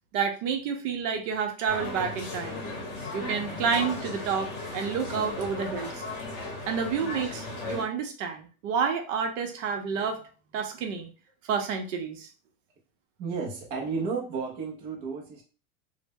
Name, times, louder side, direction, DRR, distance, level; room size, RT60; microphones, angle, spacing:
voice 1, 0.1-2.6 3.1-6.0 6.7-10.2 10.5-11.1 11.5-12.3, right 6 dB, 65° right, 4 dB, 0.7 m, -29 dB
sound 1, 1.7-7.8, left 2 dB, 30° left, 0.8 m, -36 dB
voice 2, 13.2-15.4, right 5 dB, 30° right, -2 dB, 0.4 m, -33 dB
2.0 x 2.0 x 3.3 m, 0.37 s
supercardioid pair, 155°, 42 cm